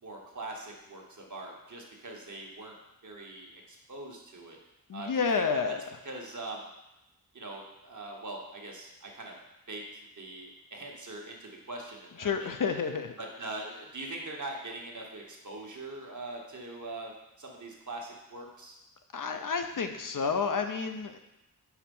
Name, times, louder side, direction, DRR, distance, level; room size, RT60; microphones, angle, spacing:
voice 1, 0.0-2.7 3.0-4.6 4.9-5.7 6.0-6.6 7.3-9.4 9.7-9.8 10.2-12.8 13.2-17.1 17.4-18.8, right 2 dB, 50° right, 0 dB, 1.2 m, -42 dB
voice 2, 4.9-5.8 12.2-13.2 19.1-21.2, left 5 dB, 60° left, 6 dB, 0.6 m, -30 dB
4.8 x 4.4 x 5.3 m, 0.92 s
wide cardioid pair, 80°, 37 cm